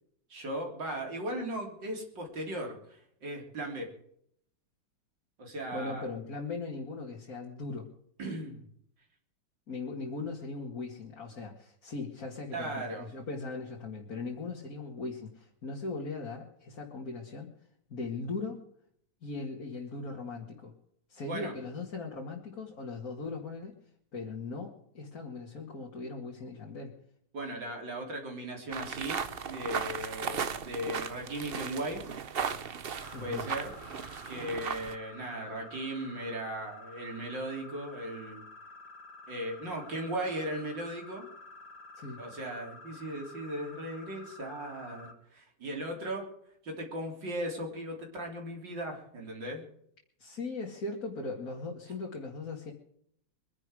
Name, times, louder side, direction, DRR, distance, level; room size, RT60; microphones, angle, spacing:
voice 1, 0.3-3.9 5.4-6.1 8.2-8.6 12.5-13.1 21.3-21.5 27.3-32.0 33.2-33.7 34.3-38.4 39.3-41.3 42.2-46.3 46.6-49.7, right 1 dB, 75° right, 1 dB, 4.0 m, -37 dB
voice 2, 5.7-7.9 9.7-17.5 17.9-18.6 19.2-20.7 21.1-23.8 24.1-27.0 33.1-33.4 41.9-42.2 50.2-52.7, left 3 dB, 50° left, -1 dB, 2.5 m, -39 dB
sound 1, 28.7-34.9, right 6 dB, 50° right, 0.7 m, -36 dB
sound 2, 33.0-45.1, left 3 dB, 85° left, 2.9 m, -50 dB
24.0 x 10.5 x 4.9 m, 0.68 s
omnidirectional pair, 2.0 m